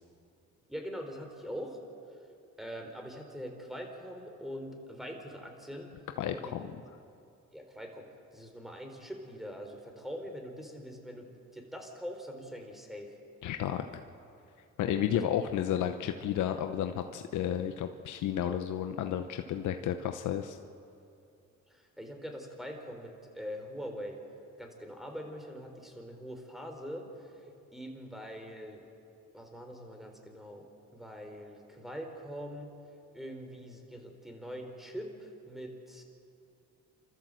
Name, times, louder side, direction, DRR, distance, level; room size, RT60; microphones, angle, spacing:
voice 1, 0.7-1.8 2.6-6.0 6.3-6.5 7.5-13.1 15.1-15.2 21.7-24.2 24.6-28.9 29.3-30.7 30.9-32.7 33.1-36.0, equal, ahead, 3 dB, 4.0 m, -43 dB
voice 2, 6.2-6.7 13.4-14.0 14.8-20.6, left 10 dB, 80° left, 7 dB, 0.9 m, -32 dB
28.0 x 13.5 x 7.7 m, 2.6 s
cardioid pair, 90°, 30 cm